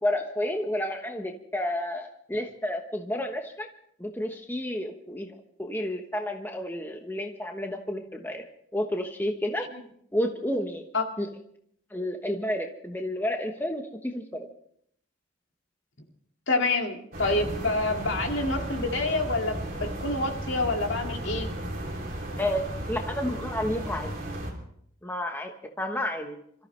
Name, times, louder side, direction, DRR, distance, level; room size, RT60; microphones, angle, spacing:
voice 1, 0.0-3.7 4.0-5.3 5.6-8.4 8.7-9.7 10.1-10.8 11.2-11.3 11.9-14.5 22.4-24.1 25.0-25.5 25.8-26.4, left 1 dB, 10° left, 3 dB, 1.1 m, -30 dB
voice 2, 16.5-21.5, left 2 dB, 70° left, 3 dB, 2.2 m, -27 dB
sound 1, 17.1-24.5, right 1 dB, 45° right, 3.2 m, -34 dB
26.5 x 14.0 x 3.3 m, 0.67 s
head